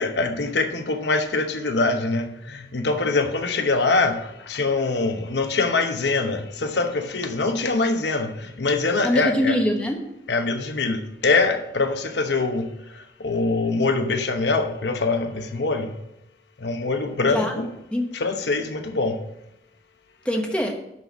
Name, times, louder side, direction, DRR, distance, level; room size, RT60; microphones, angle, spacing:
voice 1, 0.0-4.2 4.5-9.6 10.3-12.6 13.2-15.9 16.6-17.7 18.1-19.2, left 3 dB, 85° left, 0.9 m, -23 dB
voice 2, 9.0-10.0 17.3-17.6 17.9-18.2 20.2-20.7, equal, 5° left, 1.1 m, -23 dB
11.0 x 4.1 x 6.9 m
head